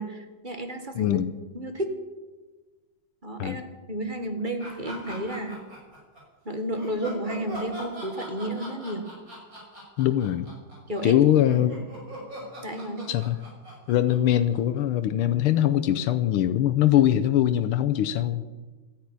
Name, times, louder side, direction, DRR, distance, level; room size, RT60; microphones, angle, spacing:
voice 1, 0.0-1.2 1.5-1.9 3.2-5.6 6.4-9.1 10.9-11.2 12.6-13.1, right 1 dB, 25° right, 6 dB, 1.5 m, -32 dB
voice 2, 0.9-1.3 3.4-3.6 10.0-10.5 11.0-11.8 13.1-13.4 13.9-18.4, left 11 dB, 90° left, 11 dB, 1.6 m, -22 dB
sound 1, 4.6-6.2 6.7-15.0, equal, 40° right, 6.7 m, -41 dB
14.0 x 10.5 x 9.8 m, 1.2 s
omnidirectional pair, 2.3 m